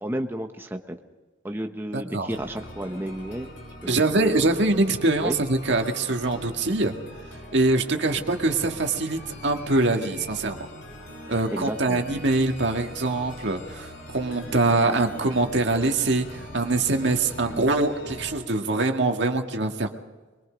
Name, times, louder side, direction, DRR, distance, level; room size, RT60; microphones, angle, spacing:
voice 1, 0.0-0.9 1.4-3.5 3.8-4.3 5.2-5.4 11.5-12.0, right 1 dB, 10° right, 4 dB, 1.0 m, -32 dB
voice 2, 1.9-2.3 3.9-7.0 7.5-10.7 11.3-19.9, right 2 dB, 65° right, 4 dB, 1.9 m, -24 dB
sound 1, 2.3-18.3, left 1 dB, 90° left, 6.6 m, -42 dB
23.5 x 23.0 x 5.2 m, 1.2 s
head